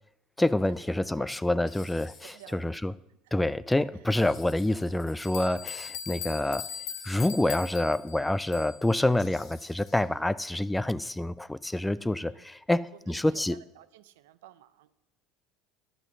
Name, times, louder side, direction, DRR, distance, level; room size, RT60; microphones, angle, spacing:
voice 1, 0.4-2.9 3.3-6.7 7.0-13.6, left 1 dB, 10° left, 0.3 m, -27 dB
sound 1, 0.7-0.9 1.6-2.5 4.0-5.3 6.6-7.3 9.1-10.2, left 4 dB, 40° left, 1.5 m, -54 dB
voice 2, 1.1-1.5 2.2-2.8 3.2-3.3 4.0-4.1 12.0-12.4 13.1-14.9, right 13 dB, 85° right, 0.5 m, -53 dB
sound 2, 5.2-8.9, left 9 dB, 70° left, 0.8 m, -40 dB
11.0 x 5.9 x 7.0 m
supercardioid pair, 85°, 0 cm